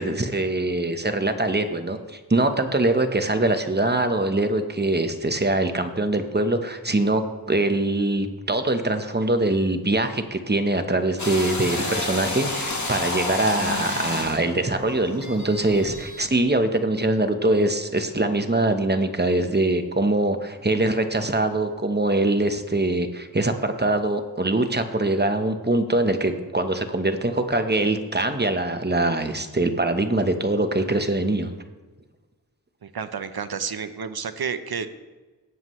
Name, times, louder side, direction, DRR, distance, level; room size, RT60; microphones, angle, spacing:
voice 1, 0.0-31.5, right 2 dB, 25° right, 7 dB, 1.0 m, -23 dB
sound 1, 11.2-16.4, left 2 dB, 45° left, 1.7 m, -30 dB
voice 2, 32.8-34.9, right 6 dB, 65° right, 11 dB, 0.8 m, -30 dB
17.5 x 7.5 x 3.2 m, 1.3 s
cardioid pair, 45°, 39 cm